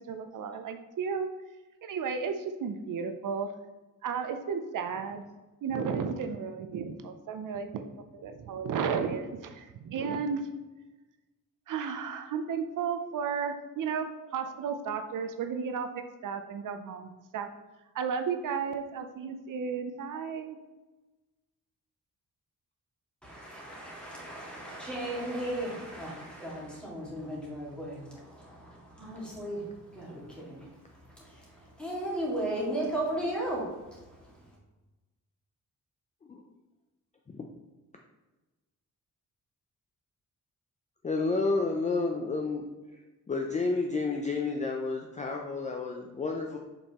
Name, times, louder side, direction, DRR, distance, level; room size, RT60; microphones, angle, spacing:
voice 1, 0.1-1.3 1.8-3.5 4.0-5.2 5.6-7.9 8.1-10.4 11.7-17.5 17.9-20.6, right 6 dB, 75° right, 7 dB, 0.6 m, -33 dB
voice 2, 23.2-30.7 31.1-31.5 31.8-33.7 33.9-34.0, right 1 dB, 5° left, -6 dB, 1.9 m, -35 dB
voice 3, 41.0-42.7 43.3-46.6, left 3 dB, 25° left, 2 dB, 0.4 m, -30 dB
7.0 x 5.3 x 2.9 m, 1.1 s
wide cardioid pair, 180°, 32 cm